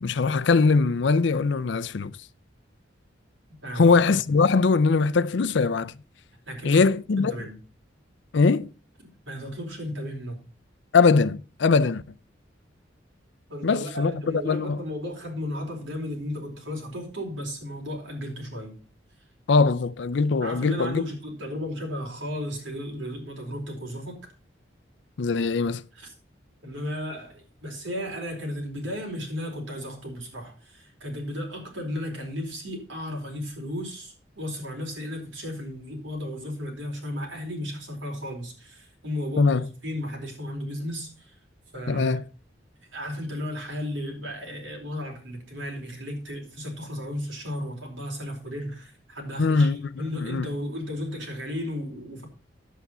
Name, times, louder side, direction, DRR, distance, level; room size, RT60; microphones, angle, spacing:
voice 1, 0.0-2.1 3.8-5.9 6.6-7.3 8.3-8.7 10.9-12.0 13.6-14.8 19.5-21.0 25.2-25.8 39.4-39.7 41.9-42.2 49.4-49.8 50.1-50.5, left 4 dB, 65° left, 0.5 m, -21 dB
voice 2, 3.6-4.2 6.5-6.8 7.2-7.5 9.0-10.4 13.5-18.8 20.4-24.2 25.9-26.1 26.6-41.3 41.7-42.2 42.9-49.7 50.0-52.3, equal, 80° right, 4.5 m, -34 dB
10.5 x 8.4 x 5.4 m
head